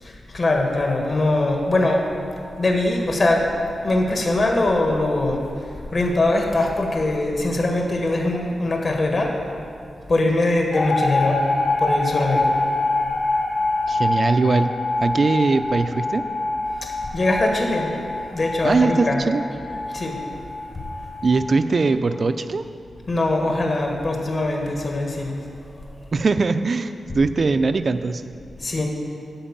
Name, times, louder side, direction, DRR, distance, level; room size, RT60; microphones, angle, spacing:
voice 1, 0.0-2.1 2.6-3.5 3.8-5.5 5.9-9.3 10.1-11.4 11.8-12.6 17.1-18.0 18.3-19.2 19.8-20.2 23.1-25.4 28.6-28.9, left 2 dB, 40° left, 1 dB, 1.6 m, -22 dB
sound 1, 10.7-21.9, left 2 dB, 60° left, 2.4 m, -25 dB
voice 2, 13.9-14.7 15.0-16.3 18.6-19.4 21.2-22.6 26.1-28.4, right 4 dB, 40° right, 10 dB, 0.4 m, -21 dB
12.5 x 4.7 x 7.4 m, 2.5 s
wide cardioid pair, 130°, 0 cm